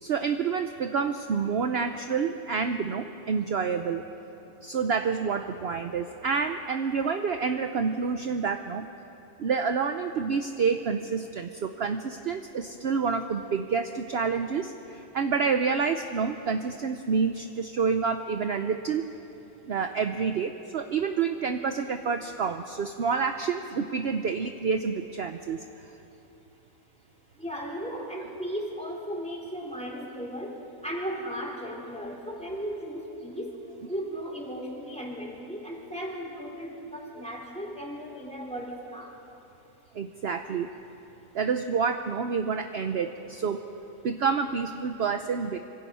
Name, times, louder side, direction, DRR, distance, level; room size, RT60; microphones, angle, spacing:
voice 1, 0.0-4.0 4.6-8.9 9.4-19.0 19.7-25.6 39.9-40.7 41.3-45.6, right 5 dB, 55° right, 7 dB, 0.9 m, -28 dB
voice 2, 27.4-39.2, equal, 5° left, -1 dB, 3.5 m, -36 dB
25.0 x 25.0 x 5.6 m, 3.0 s
omnidirectional pair, 1.5 m